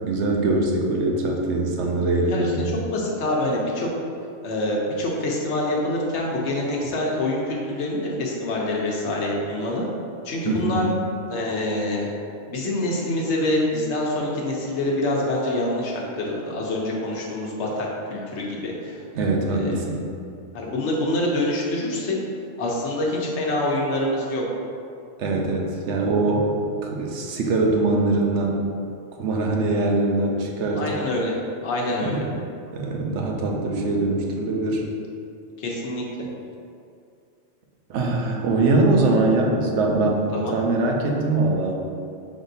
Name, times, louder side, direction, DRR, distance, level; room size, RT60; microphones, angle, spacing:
voice 1, 0.0-2.7 10.4-10.9 19.2-20.1 25.2-26.5 26.8-28.6 29.2-30.9 32.0-32.2 32.7-34.8 37.9-41.8, right 2 dB, 85° right, 0 dB, 0.9 m, -22 dB
voice 2, 2.9-3.9 4.4-9.9 10.2-10.9 11.3-12.1 12.5-19.0 19.5-19.8 20.5-22.2 22.6-24.4 30.8-31.3 31.6-32.3 35.6-36.3 40.3-40.5, left 1 dB, 75° left, -2 dB, 1.1 m, -26 dB
5.4 x 3.6 x 2.6 m, 2.4 s
omnidirectional pair, 1.2 m